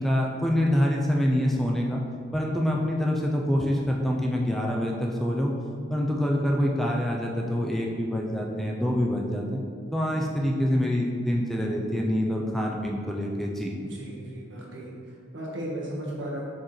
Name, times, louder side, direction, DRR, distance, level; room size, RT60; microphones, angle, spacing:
voice 1, 0.0-2.0 2.3-5.5 5.9-9.6 9.9-13.7, equal, ahead, -1 dB, 0.4 m, -26 dB
voice 2, 13.8-14.9 15.3-16.4, right 1 dB, 70° right, -4 dB, 1.4 m, -35 dB
7.3 x 4.5 x 3.1 m, 2.2 s
head